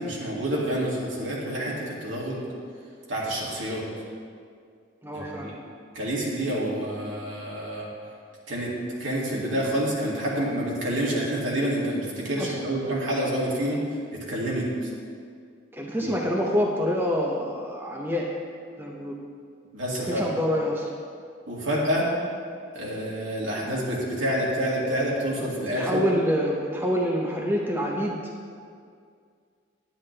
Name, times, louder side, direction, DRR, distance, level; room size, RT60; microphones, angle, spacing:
voice 1, 0.0-2.5 3.1-3.8 5.1-5.5 5.9-7.9 8.5-8.7 9.0-13.8 14.1-14.9 16.0-16.1 19.7-20.3 21.5-22.1 22.7-26.0, right 1 dB, 75° right, -5 dB, 2.3 m, -28 dB
voice 2, 5.0-5.5 12.4-12.5 15.7-18.3 18.8-19.1 20.1-20.8 25.8-28.2, equal, 10° right, -2 dB, 0.7 m, -26 dB
10.5 x 9.6 x 3.3 m, 2.2 s
head